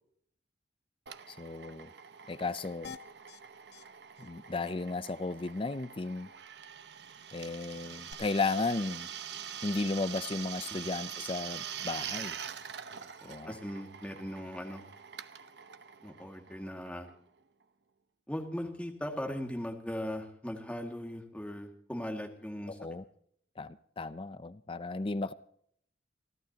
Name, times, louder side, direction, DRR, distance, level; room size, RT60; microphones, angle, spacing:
Drill, 1.1-17.4, right 8 dB, 65° right, 0.9 m, -44 dB
voice 1, 1.3-1.9 2.3-3.0 4.2-6.3 7.3-9.1 9.6-12.4 13.2-13.6 22.7-23.0 23.6-25.3, left 3 dB, 30° left, 0.5 m, -34 dB
sound 1, 2.8-3.4 3.7-3.8 4.2-4.3 4.6-4.7 8.1-8.2, left 6 dB, 65° left, 0.9 m, -47 dB
voice 2, 12.9-14.9 16.0-17.1 18.3-22.8, equal, 5° left, 2.0 m, -39 dB
29.0 x 12.0 x 2.9 m
head